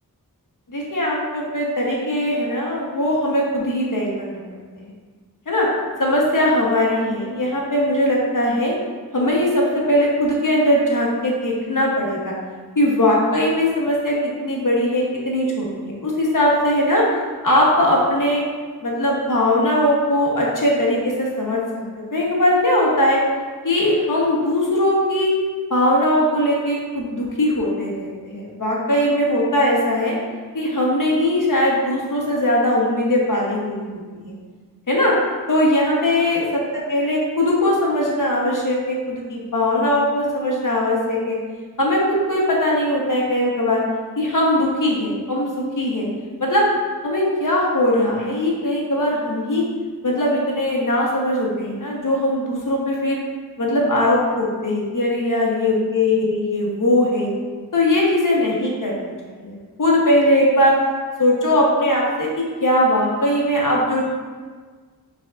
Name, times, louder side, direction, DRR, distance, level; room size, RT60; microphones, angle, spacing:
voice 1, 0.7-4.4 4.7-4.9 5.5-5.7 6.0-8.7 9.1-12.3 12.8-17.0 17.4-18.4 18.8-23.2 23.6-25.3 25.7-30.1 30.5-34.3 34.9-35.1 35.5-36.4 36.9-41.4 41.8-43.8 44.2-46.1 46.4-46.6 47.0-49.7 50.0-53.2 53.6-57.3 57.7-60.7 61.2-64.0, left 1 dB, 55° left, -3 dB, 0.9 m, -20 dB
5.2 x 3.5 x 2.4 m, 1.5 s
wide cardioid pair, 40°, 37 cm